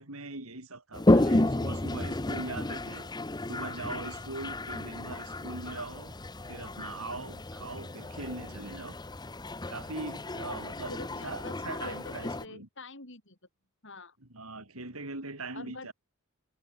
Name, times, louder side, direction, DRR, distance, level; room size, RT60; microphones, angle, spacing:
voice 1, 0.0-3.1 3.5-6.2 6.5-9.0 9.7-11.0 11.2-12.7 14.3-15.9, right 2 dB, 90° right, 4.9 m, -41 dB
Toilet flush, 0.9-12.4, left 1 dB, 20° left, 0.9 m, -31 dB
voice 2, 10.5-11.5 11.8-13.4 13.8-14.2 15.5-15.9, left 3 dB, 60° left, 5.7 m, -45 dB
head